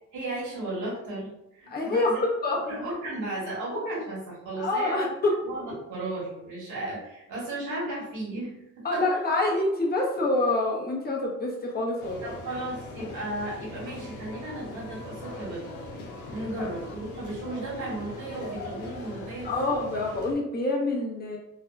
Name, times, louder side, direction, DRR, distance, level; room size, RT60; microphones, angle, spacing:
voice 1, 0.1-2.2 2.6-5.1 5.4-9.0 12.2-15.7 16.3-19.7, right 1 dB, 75° right, -6 dB, 1.5 m, -35 dB
voice 2, 1.7-2.6 4.6-5.3 8.8-12.3 16.3-16.7 19.4-21.4, left 2 dB, 30° left, -3 dB, 1.0 m, -27 dB
sound 1, 12.0-20.3, left 2 dB, 90° left, 0.8 m, -41 dB
3.4 x 2.3 x 2.4 m, 0.87 s
cardioid pair, 90°, 30 cm